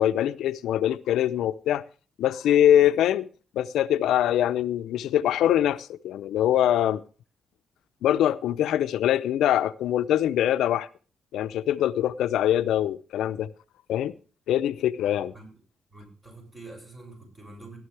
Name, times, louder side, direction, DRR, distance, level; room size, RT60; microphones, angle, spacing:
voice 1, 0.0-1.8 2.2-3.3 3.5-7.0 8.0-10.9 11.3-13.5 13.9-14.1 14.5-15.3, left 11 dB, 85° left, 0.6 m, -23 dB
voice 2, 15.9-17.8, right 2 dB, 25° right, 7.3 m, -45 dB
16.0 x 12.0 x 3.3 m
cardioid pair, 100°, 0 cm